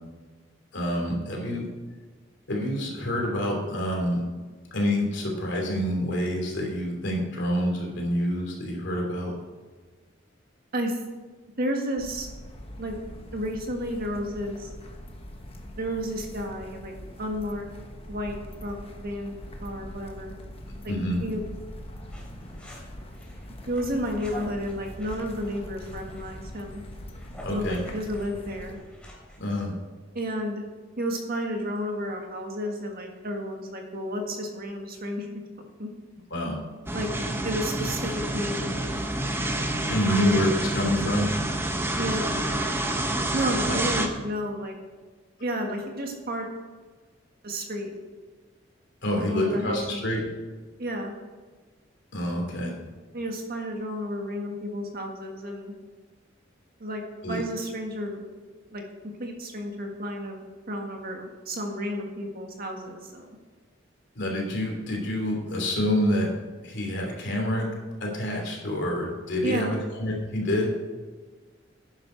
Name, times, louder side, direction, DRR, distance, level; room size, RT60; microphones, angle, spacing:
voice 1, 0.7-1.7 2.5-4.2 4.7-9.3 20.9-21.2 27.4-27.8 29.4-29.7 36.3-36.6 39.9-41.3 43.7-43.8 49.0-50.2 52.1-52.7 57.2-57.4 64.1-66.3 66.6-67.7 68.0-70.7, left 1 dB, 65° left, 0 dB, 3.0 m, -27 dB
voice 2, 11.6-12.3 12.8-12.9 13.3-14.7 15.8-17.7 18.1-18.4 18.6-20.3 20.8-20.9 21.2-21.4 23.7-26.8 27.5-28.8 30.1-30.6 31.0-35.4 35.8-35.9 36.9-37.1 37.4-39.0 40.1-40.4 42.0-42.4 43.3-44.8 45.4-46.5 47.4-47.9 49.2-50.0 50.8-51.1 53.1-55.7 56.8-57.0 57.3-58.2 58.7-58.8 59.2-63.4 69.4-69.8, equal, 50° right, 2 dB, 1.7 m, -32 dB
sound 1, 12.0-28.8, left 1 dB, 30° left, 1.2 m, -42 dB
sound 2, 22.1-29.7, equal, 5° left, 3.7 m, -47 dB
sound 3, 36.9-44.1, right 1 dB, 10° right, 1.0 m, -28 dB
11.5 x 9.7 x 4.5 m, 1.4 s
head